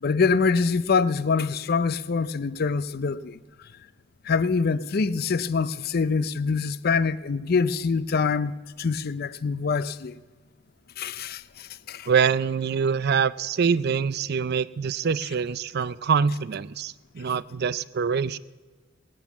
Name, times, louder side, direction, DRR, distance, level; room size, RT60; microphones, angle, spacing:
voice 1, 0.0-3.4 4.2-10.1 11.0-12.1, left 5 dB, 55° left, 0.5 m, -25 dB
voice 2, 12.1-18.4, right 6 dB, 55° right, 0.4 m, -25 dB
19.0 x 9.1 x 7.1 m
head